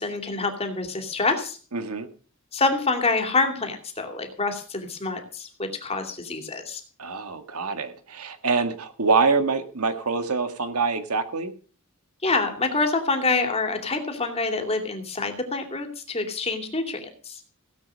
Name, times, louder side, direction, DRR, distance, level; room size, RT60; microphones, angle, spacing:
voice 1, 0.0-1.6 2.5-6.8 12.2-17.4, left 3 dB, 25° left, 5 dB, 2.7 m, -26 dB
voice 2, 1.7-2.1 7.0-11.5, right 4 dB, 85° right, 9 dB, 1.8 m, -25 dB
17.5 x 8.5 x 6.4 m, 0.40 s
head